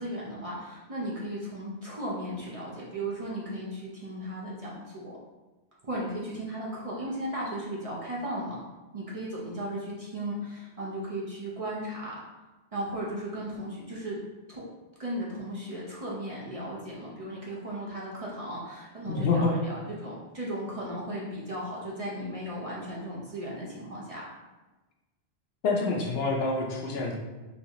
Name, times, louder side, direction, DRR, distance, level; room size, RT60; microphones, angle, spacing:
voice 1, 0.0-5.2 5.8-8.6 8.9-12.2 12.7-14.2 14.5-14.6 15.0-24.3, right 1 dB, 40° right, -5 dB, 0.7 m, -36 dB
voice 2, 19.1-19.5 25.6-27.2, left 3 dB, 70° left, 0 dB, 0.8 m, -27 dB
4.1 x 2.7 x 2.9 m, 1.2 s
omnidirectional pair, 1.1 m